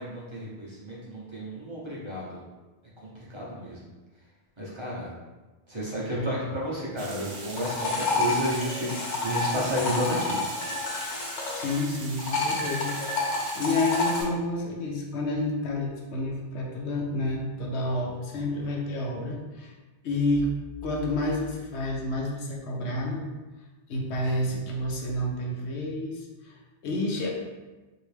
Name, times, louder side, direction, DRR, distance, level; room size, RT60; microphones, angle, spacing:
voice 1, 0.0-2.4 3.3-3.8 4.6-5.1 5.7-8.9 9.2-10.4, equal, 30° right, -7 dB, 0.7 m, -31 dB
voice 2, 6.0-6.4 11.5-19.7 20.0-20.5 20.8-23.2 23.9-27.3, left 1 dB, 80° left, -1 dB, 0.9 m, -30 dB
Water, 7.0-14.3, right 3 dB, 65° right, 0.8 m, -41 dB
sound 1, 7.3-11.9 12.2-14.2, left 3 dB, 50° left, 0.7 m, -29 dB
3.1 x 2.8 x 3.3 m, 1.2 s
omnidirectional pair, 1.1 m